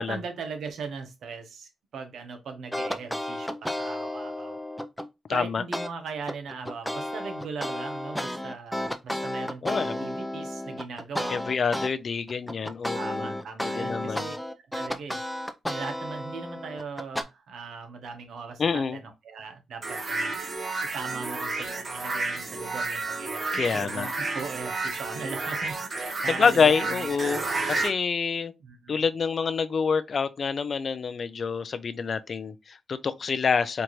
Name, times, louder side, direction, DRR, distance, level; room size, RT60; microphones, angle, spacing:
voice 1, 0.0-4.6 5.3-11.4 12.9-14.3 14.7-15.2 15.7-20.3 20.9-27.8 28.6-29.0, right 5 dB, 80° right, 0.9 m, -39 dB
sound 1, 2.7-5.1 5.7-5.9 6.3-11.9 12.3-17.2, left 1 dB, 5° left, 0.5 m, -32 dB
voice 2, 5.3-5.6 9.6-10.1 11.3-13.3 13.6-14.3 18.6-19.0 23.5-24.1 26.3-27.4 27.7-28.5 28.9-33.8, left 5 dB, 55° left, 0.4 m, -27 dB
sound 2, 19.8-27.9, right 3 dB, 50° right, 1.0 m, -31 dB
4.5 x 2.5 x 3.0 m
cardioid pair, 70°, 0 cm